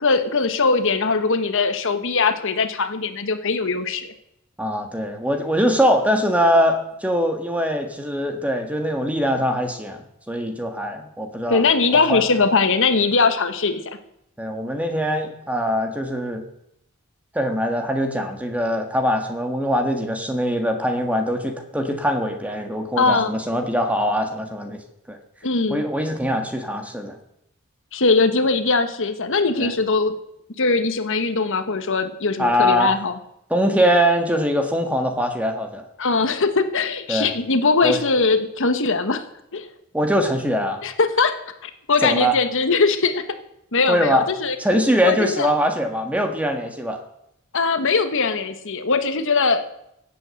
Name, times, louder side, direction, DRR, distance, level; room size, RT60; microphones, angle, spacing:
voice 1, 0.0-4.1 11.5-14.0 23.0-23.3 25.4-25.8 27.9-30.2 30.6-33.1 36.0-39.3 39.5-39.7 40.8-43.2 43.7-44.6 45.0-45.5 47.5-49.7, left 4 dB, 60° left, 9 dB, 1.2 m, -21 dB
voice 2, 4.6-10.0 10.3-11.6 12.1-12.2 14.4-16.4 17.3-24.8 25.1-25.2 25.7-27.2 29.6-29.7 32.4-32.9 33.5-35.8 37.1-37.3 37.8-38.0 39.9-40.8 42.0-42.3 43.9-44.2 44.6-47.0, equal, 5° right, 5 dB, 1.6 m, -22 dB
16.5 x 8.5 x 7.7 m, 0.79 s
head